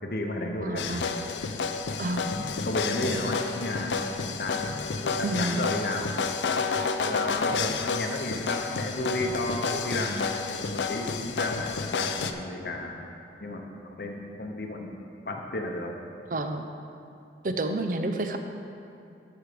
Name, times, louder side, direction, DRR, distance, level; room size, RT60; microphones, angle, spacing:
voice 1, 0.0-1.0 2.3-4.0 4.4-4.7 5.0-6.1 7.0-13.0 13.4-13.6 14.0-15.0 15.3-15.9, left 1 dB, 55° left, 2 dB, 0.8 m, -33 dB
voice 2, 0.6-1.1 2.0-2.3 5.2-5.6 16.3-16.6 17.4-18.4, right 2 dB, 50° right, 6 dB, 0.6 m, -29 dB
sound 1, 0.8-12.3, left 5 dB, 85° left, 0.5 m, -30 dB
12.5 x 4.8 x 5.0 m, 2.5 s
head